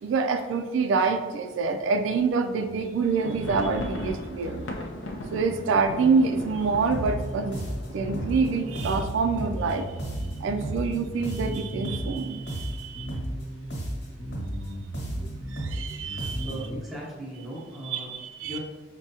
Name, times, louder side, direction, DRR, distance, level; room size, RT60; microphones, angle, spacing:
voice 1, 0.0-4.7 5.3-7.6 7.9-10.0 10.4-13.1 14.7-14.8 15.5-16.5 17.8-18.6, right 4 dB, 80° right, 6 dB, 0.3 m, -26 dB
sound 1, 3.1-10.8 11.1-11.2 11.5-11.7 12.2-12.7, left 1 dB, 80° left, 0.5 m, -38 dB
sound 2, 6.9-16.8, right 1 dB, 60° left, 1.3 m, -33 dB
voice 2, 16.4-18.1 18.4-18.6, right 1 dB, ahead, -6 dB, 0.8 m, -37 dB
6.0 x 2.2 x 2.7 m, 1.2 s
head